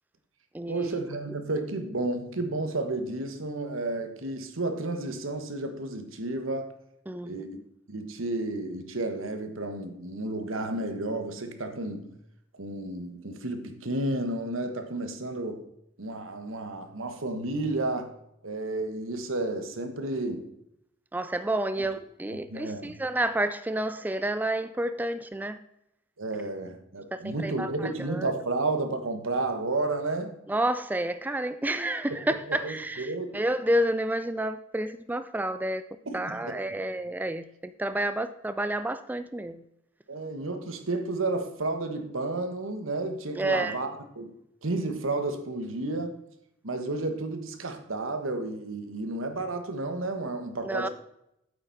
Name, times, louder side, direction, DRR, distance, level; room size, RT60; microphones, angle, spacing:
voice 1, 0.7-6.7 7.2-7.6 7.9-12.2 12.6-15.6 16.0-18.1 18.4-20.5 21.8-21.9 22.3-23.0 26.2-30.4 32.1-32.2 32.5-33.4 36.1-36.8 40.1-44.3 44.6-46.2 46.6-50.9, right 2 dB, 90° right, 1.3 m, -32 dB
voice 2, 21.1-25.6 27.1-28.3 30.5-35.8 36.1-39.6 43.4-43.8 50.6-50.9, right 1 dB, 10° right, 0.3 m, -30 dB
8.9 x 8.1 x 4.1 m
head